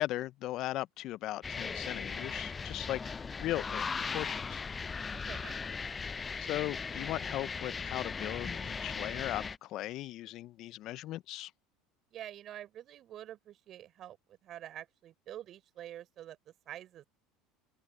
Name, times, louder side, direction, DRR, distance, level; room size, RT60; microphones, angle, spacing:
voice 1, 0.0-3.0 3.4-4.6 6.4-11.5, left 15 dB, 55° left, 0.8 m, -38 dB
sound 1, 1.4-9.6, left 5 dB, 25° left, 0.6 m, -38 dB
voice 2, 5.1-5.6 12.1-17.1, right 12 dB, 50° right, 6.2 m, -47 dB
open air
hypercardioid pair, 80°, 0 cm